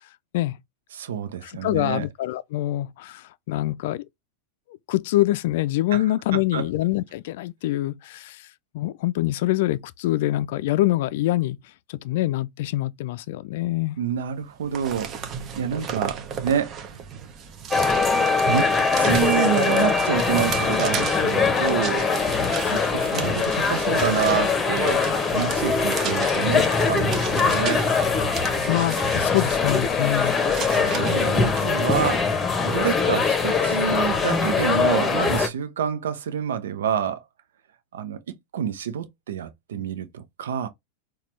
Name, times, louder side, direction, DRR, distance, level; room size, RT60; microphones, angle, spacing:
voice 1, 0.9-2.1 5.9-6.1 6.3-6.7 14.0-17.0 18.5-18.7 19.0-22.1 22.6-27.8 30.7-32.3 32.6-37.2 37.9-40.7, right 8 dB, 75° right, 0.7 m, -28 dB
voice 2, 1.4-4.0 4.9-8.4 8.7-11.6 11.9-14.0 28.7-30.4, left 16 dB, 65° left, 0.3 m, -25 dB
sound 1, 14.4-31.7, right 7 dB, 40° right, 0.8 m, -36 dB
sound 2, 17.7-35.5, left 5 dB, 20° left, 0.9 m, -22 dB
sound 3, 17.7-22.8, left 2 dB, 5° right, 0.6 m, -27 dB
4.1 x 2.3 x 3.2 m
hypercardioid pair, 100°, 0 cm